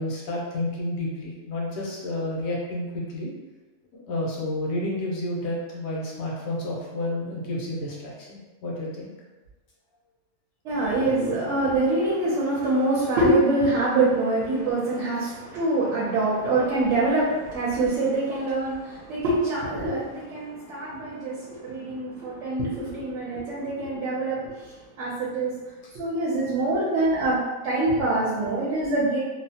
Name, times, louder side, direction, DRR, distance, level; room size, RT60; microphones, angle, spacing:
voice 1, 0.0-3.3 3.9-9.1, left 1 dB, 85° left, -3 dB, 1.1 m, -30 dB
voice 2, 10.6-25.6 25.9-27.4 27.6-29.2, right 2 dB, 70° right, -6 dB, 0.9 m, -25 dB
2.7 x 2.0 x 2.7 m, 1.2 s
omnidirectional pair, 1.4 m